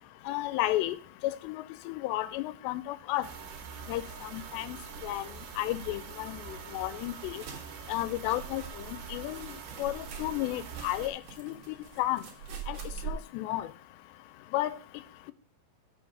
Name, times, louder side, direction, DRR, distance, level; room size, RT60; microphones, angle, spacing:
voice 1, 0.3-1.0 1.2-3.3 3.9-4.0 4.3-4.8 5.0-5.2 5.6-7.4 7.9-8.6 8.9-9.5 9.8-12.2 12.7-12.8 13.0-13.7 14.5-14.8, left 15 dB, 85° left, 2.7 m, -32 dB
sound 1, 3.2-11.1, right 7 dB, 75° right, 2.9 m, -44 dB
sound 2, 7.2-13.1, right 7 dB, 60° right, 2.3 m, -44 dB
6.4 x 4.7 x 6.4 m
omnidirectional pair, 4.9 m